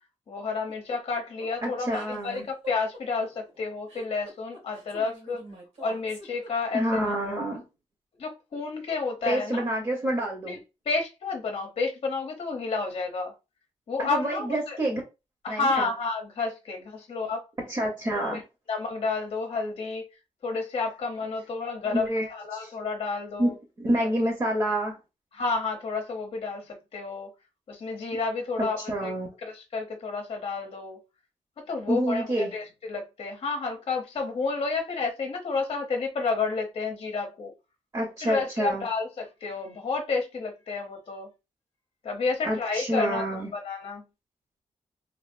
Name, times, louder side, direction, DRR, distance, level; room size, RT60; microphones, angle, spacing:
voice 1, 0.3-5.4 5.8-7.0 8.2-9.6 10.5-10.6 10.9-13.3 13.9-14.8 15.4-17.4 18.3-18.4 18.7-20.1 20.4-23.5 25.3-27.3 27.7-29.1 29.4-31.0 31.6-37.5 38.2-41.3 42.0-43.2 43.5-44.0, left 4 dB, 45° left, 0.7 m, -30 dB
sound 1, 0.7-7.0, right 1 dB, 70° right, 1.7 m, -46 dB
voice 2, 1.6-2.4 6.7-7.6 9.3-10.6 14.0-15.0 15.5-15.9 17.7-18.4 21.8-22.7 23.4-25.0 28.1-28.2 28.6-29.3 31.9-32.5 37.9-38.9 42.4-43.5, right 1 dB, 30° right, 0.9 m, -28 dB
3.2 x 2.5 x 2.5 m
wide cardioid pair, 165°, 13 cm